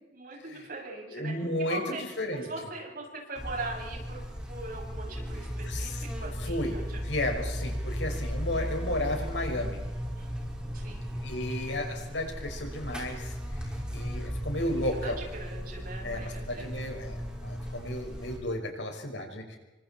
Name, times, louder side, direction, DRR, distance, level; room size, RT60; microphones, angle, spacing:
voice 1, 0.1-1.3 1.6-2.0 2.3-4.2 4.5-7.0 7.9-8.2 10.1-11.3 14.5-14.7 15.0-16.9, right 2 dB, 50° right, 0 dB, 7.9 m, -41 dB
voice 2, 1.1-1.8 2.2-2.5 5.6-9.8 11.2-15.2 16.0-19.6, left 1 dB, 75° left, 3 dB, 5.7 m, -33 dB
Buzz, 3.3-18.4, equal, 5° right, 5.4 m, -36 dB
30.0 x 25.0 x 4.5 m, 1.1 s
head